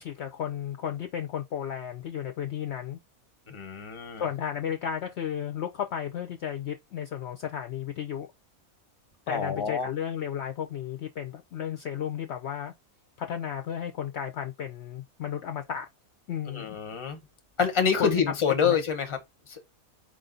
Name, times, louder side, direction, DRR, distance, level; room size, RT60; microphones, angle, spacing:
voice 1, 0.0-3.0 4.2-8.3 9.3-12.7 13.2-15.9 16.3-16.8 18.0-18.2 18.6-18.8, left 9 dB, 65° left, 0.8 m, -33 dB
voice 2, 3.5-4.2 9.3-9.9 16.5-17.2 17.6-19.2 19.5-19.6, left 6 dB, 25° left, 0.9 m, -27 dB
4.9 x 2.5 x 3.8 m
omnidirectional pair, 1.5 m